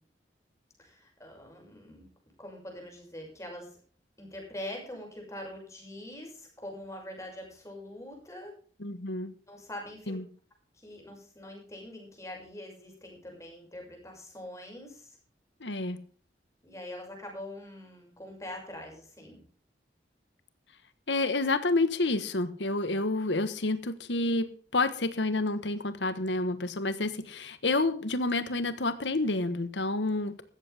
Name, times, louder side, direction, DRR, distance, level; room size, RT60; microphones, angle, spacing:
voice 1, 0.8-2.1 2.4-3.8 4.2-8.5 9.5-10.2 10.7-15.2 16.6-19.4, left 1 dB, 15° left, 1 dB, 6.3 m, -43 dB
voice 2, 8.8-9.3 10.1-10.2 15.6-16.0 21.1-30.4, left 2 dB, 80° left, 12 dB, 1.3 m, -29 dB
15.5 x 14.0 x 3.5 m, 0.43 s
head